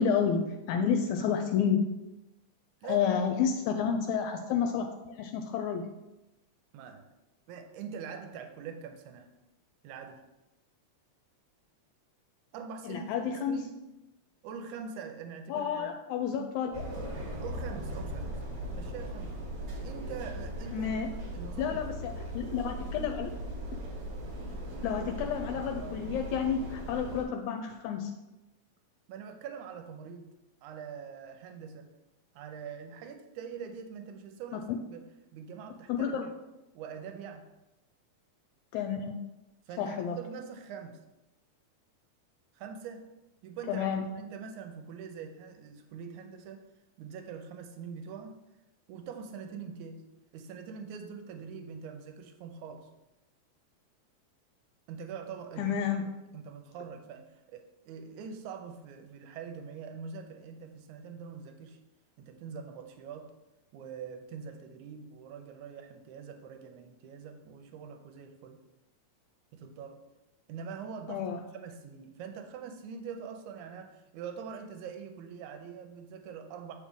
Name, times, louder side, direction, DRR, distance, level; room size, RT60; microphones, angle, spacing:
voice 1, 0.0-1.9 2.8-5.9 12.8-13.6 15.5-16.8 20.7-21.1 21.6-23.3 24.8-28.1 34.5-34.6 35.9-36.3 38.7-39.1 39.8-40.2 43.7-44.0 55.6-56.1 71.1-71.4, left 7 dB, 80° left, 5 dB, 1.9 m, -30 dB
voice 2, 2.8-3.3 6.7-7.1 7.5-9.3 9.8-10.2 12.5-13.8 14.4-15.9 17.4-18.4 18.7-19.4 19.8-21.9 29.1-30.3 30.6-32.0 32.3-35.0 35.3-36.2 36.8-37.5 39.7-41.0 42.5-43.1 43.4-46.6 47.0-48.4 48.9-52.9 54.9-55.8 56.1-61.8 62.2-63.3 63.7-68.6 69.5-70.1 70.5-76.7, right 6 dB, 90° right, 6 dB, 2.1 m, -44 dB
sound 1, 16.7-27.2, equal, 45° right, 1.3 m, -38 dB
7.3 x 4.6 x 3.6 m, 0.96 s
omnidirectional pair, 3.5 m